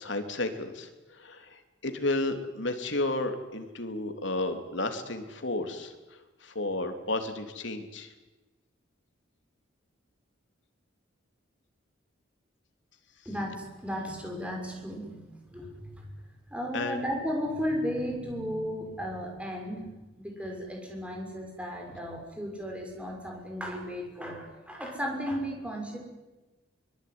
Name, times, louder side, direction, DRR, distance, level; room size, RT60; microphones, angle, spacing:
voice 1, 0.0-5.9 6.4-8.1 16.7-17.0, left 2 dB, 65° left, 7 dB, 3.2 m, -32 dB
voice 2, 13.2-16.1 16.5-19.8 20.2-26.0, equal, 5° right, 1 dB, 6.1 m, -35 dB
24.0 x 23.5 x 9.6 m, 1.1 s
head